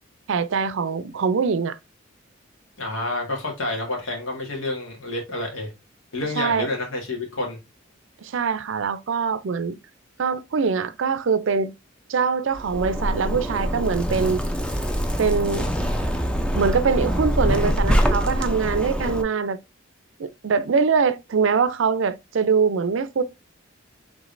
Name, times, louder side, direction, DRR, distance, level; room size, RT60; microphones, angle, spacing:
voice 1, 0.3-1.8 6.4-6.7 8.2-9.8 10.2-11.7 12.1-14.4 15.2-15.7 16.5-19.6 20.2-23.2, right 5 dB, 70° right, 0.4 m, -23 dB
voice 2, 2.8-5.7 6.1-7.6, left 2 dB, 85° left, 1.9 m, -29 dB
Zipper (clothing), 12.6-19.2, equal, 5° left, 0.4 m, -24 dB
5.0 x 3.6 x 2.5 m
head